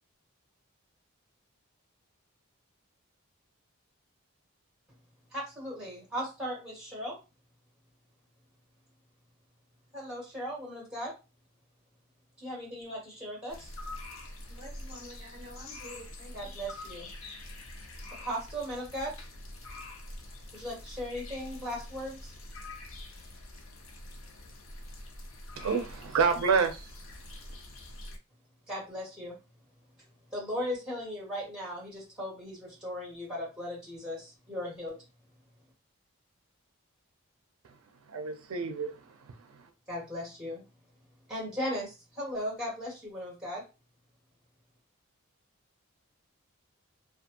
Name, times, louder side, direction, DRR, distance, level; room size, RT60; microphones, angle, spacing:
voice 1, 5.3-7.2 9.9-11.1 12.4-13.7 16.3-17.1 18.2-19.1 20.5-22.3 28.7-29.4 30.3-35.0 39.9-40.6 41.3-43.6, equal, 5° right, 1.5 m, -37 dB
sound 1, 13.5-28.2, left 1 dB, 70° left, 0.6 m, -45 dB
voice 2, 14.5-16.5, equal, 25° right, 0.8 m, -48 dB
voice 3, 25.6-26.8 38.1-38.9, right 5 dB, 80° right, 0.4 m, -28 dB
2.5 x 2.3 x 2.6 m
head